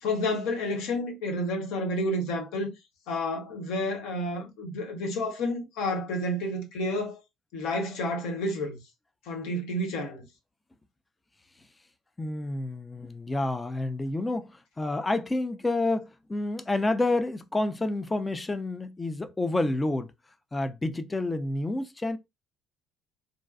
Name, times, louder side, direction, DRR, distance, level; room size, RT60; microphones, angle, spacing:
voice 1, 0.0-2.7 3.1-7.2 7.5-8.8 9.3-10.2, left 1 dB, 65° left, 0.7 m, -30 dB
voice 2, 12.2-20.1 20.5-22.2, left 2 dB, 20° left, 0.4 m, -29 dB
2.4 x 2.2 x 2.4 m
figure-of-eight pair, 55°, 0 cm